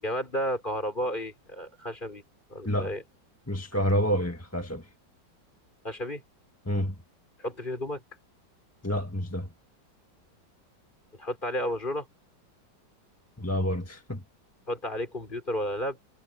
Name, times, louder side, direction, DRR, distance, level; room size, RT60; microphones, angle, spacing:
voice 1, 0.0-2.2 2.5-3.0 5.8-6.2 7.4-8.0 11.2-12.1 14.7-16.0, equal, 25° left, 5.4 m, -32 dB
voice 2, 3.5-4.8 6.7-6.9 8.8-9.5 13.4-14.2, equal, 10° left, 1.4 m, -28 dB
omnidirectional pair, 2.0 m